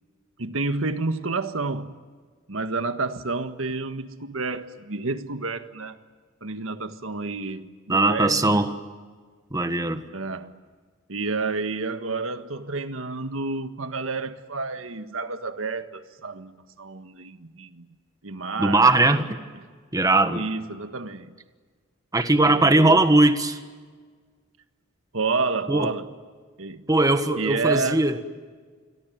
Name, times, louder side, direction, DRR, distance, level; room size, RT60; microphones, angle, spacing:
voice 1, 0.4-2.0 2.5-6.0 6.4-8.7 10.1-10.6 11.1-17.9 18.2-18.9 20.1-21.3 22.4-23.0 25.1-26.1 26.6-26.8 27.4-28.0, right 3 dB, 90° right, 1.6 m, -30 dB
voice 2, 7.9-8.8 9.5-10.0 18.6-19.4 19.9-20.4 22.1-23.6 25.7-25.9 26.9-28.2, right 2 dB, 20° right, 1.5 m, -20 dB
28.0 x 22.5 x 9.3 m
head